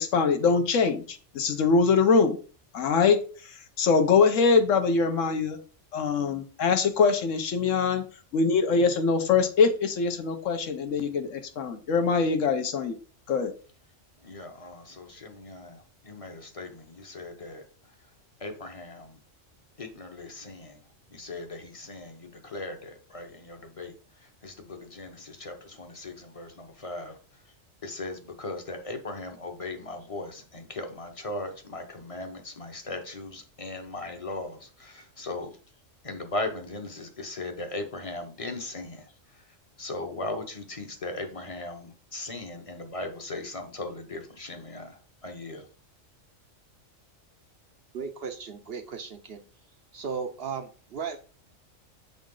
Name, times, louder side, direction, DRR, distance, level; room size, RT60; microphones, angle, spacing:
voice 1, 0.0-2.4 2.7-3.2 3.8-5.6 5.9-8.0 8.3-13.0 13.3-13.5, left 5 dB, 70° left, 7 dB, 1.1 m, -23 dB
voice 2, 14.2-18.1 18.4-19.2 19.8-20.8 21.1-27.5 27.8-35.6 36.0-45.7, left 2 dB, 30° left, 5 dB, 0.9 m, -38 dB
voice 3, 47.9-49.4 49.9-51.2, right 6 dB, 55° right, 5 dB, 0.8 m, -36 dB
7.3 x 4.0 x 3.8 m, 0.39 s
omnidirectional pair, 1.4 m